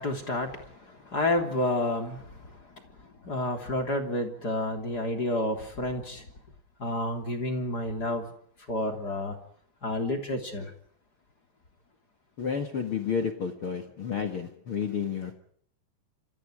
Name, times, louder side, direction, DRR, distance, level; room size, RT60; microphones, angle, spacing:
voice 1, 0.0-6.3 6.8-8.3 8.7-9.4 9.8-10.7, left 1 dB, 25° left, 5 dB, 3.0 m, -30 dB
voice 2, 12.4-15.4, left 6 dB, 70° left, 6 dB, 1.2 m, -31 dB
29.0 x 27.5 x 4.9 m, 0.62 s
omnidirectional pair, 5.4 m